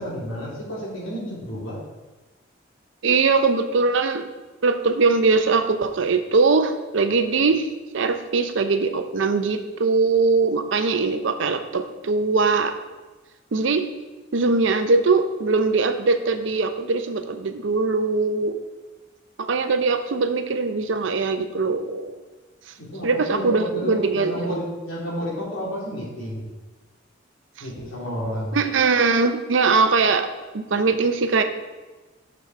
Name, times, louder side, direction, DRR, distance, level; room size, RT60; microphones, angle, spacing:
voice 1, 0.0-1.8 22.8-26.5 27.6-28.6, equal, 80° left, -5 dB, 2.5 m, -31 dB
voice 2, 3.0-4.3 4.6-7.7 7.9-12.7 13.5-13.9 14.3-18.6 19.4-22.2 23.0-24.5 28.5-30.3 30.5-31.4, right 4 dB, 65° right, 8 dB, 0.6 m, -21 dB
6.1 x 5.9 x 4.4 m, 1.2 s
head